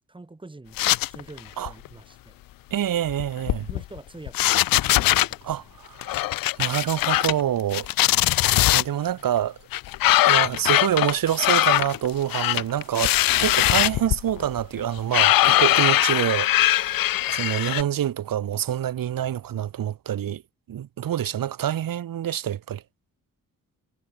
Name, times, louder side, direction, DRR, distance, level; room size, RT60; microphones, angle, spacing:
voice 1, 0.1-0.8 1.1-2.4 3.7-4.6 4.9-5.7, right 2 dB, 15° right, 6.2 m, -45 dB
sound 1, 0.8-1.4 1.7-1.9 3.1-4.0 4.3-5.3 6.0-7.4 7.7-8.8 9.7-17.8, left 15 dB, 80° left, 0.5 m, -21 dB
voice 2, 2.7-3.7 5.4-6.2 6.6-7.9 8.1-9.6 10.3-17.0 17.3-20.4 20.7-22.8, right 11 dB, 75° right, 1.6 m, -26 dB
wide cardioid pair, 170°, 34 cm